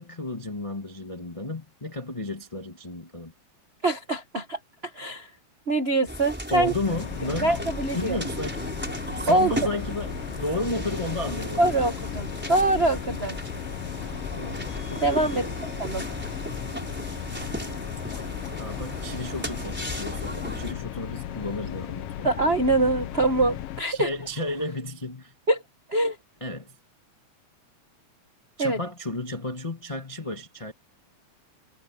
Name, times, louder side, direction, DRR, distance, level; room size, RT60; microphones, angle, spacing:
voice 1, 0.0-3.3 6.5-7.6 7.9-8.7 9.2-11.9 14.4-15.7 18.6-22.3 23.9-25.3 26.4-26.8 28.6-30.7, left 2 dB, 15° left, 1.5 m, -33 dB
voice 2, 3.8-4.6 4.9-5.3 5.7-6.7 7.4-8.2 9.3-9.5 11.6-13.4 15.0-15.4 15.8-16.0 22.2-24.1 25.5-25.6 25.9-26.2 28.6-28.8, right 2 dB, 70° right, 0.6 m, -24 dB
sound 1, 6.1-20.7, equal, 5° right, 4.3 m, -36 dB
sound 2, 6.8-23.8, left 14 dB, 85° left, 1.3 m, -36 dB
sound 3, 8.7-24.8, left 2 dB, 50° left, 7.0 m, -48 dB
omnidirectional pair, 3.4 m